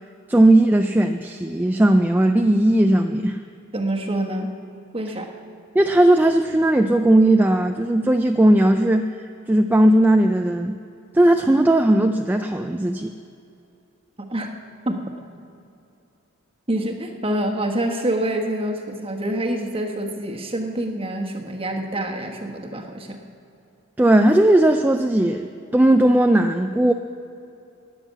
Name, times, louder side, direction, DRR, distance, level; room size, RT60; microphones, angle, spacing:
voice 1, 0.3-3.4 5.7-9.1 9.5-10.8 11.1-13.1 24.0-25.5 25.7-26.9, right 1 dB, 10° right, 5 dB, 0.3 m, -17 dB
voice 2, 3.7-4.5 4.9-5.3 14.2-14.5 14.9-15.1 16.7-23.2, right 1 dB, 25° right, 2 dB, 1.3 m, -26 dB
13.0 x 10.0 x 8.2 m, 2.7 s
head